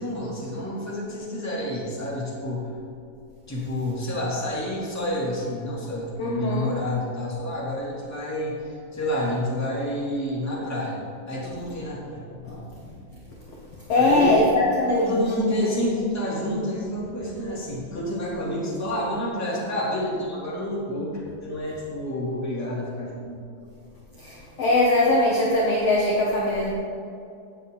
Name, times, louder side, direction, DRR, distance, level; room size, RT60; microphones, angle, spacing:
voice 1, 0.0-2.7 3.5-12.7 14.0-14.4 14.9-23.4, left 1 dB, 5° left, -6 dB, 2.0 m, -29 dB
voice 2, 6.2-6.7 13.9-15.2 24.2-26.7, left 2 dB, 60° left, -3 dB, 1.6 m, -21 dB
17.0 x 8.2 x 4.0 m, 2.5 s
omnidirectional pair, 4.6 m